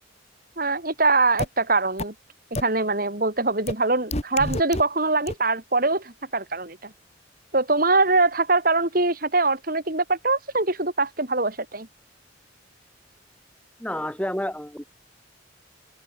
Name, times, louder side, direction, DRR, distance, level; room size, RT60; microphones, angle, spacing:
voice 1, 0.6-2.1 2.5-6.9 7.5-11.9, right 3 dB, 45° right, 3.1 m, -23 dB
sound 1, 1.4-1.5 2.0-2.1 2.5-2.6 3.7-3.8 4.1-4.8 5.3-5.4, left 1 dB, 35° left, 4.6 m, -27 dB
voice 2, 13.8-14.8, left 1 dB, 5° left, 2.5 m, -29 dB
open air
head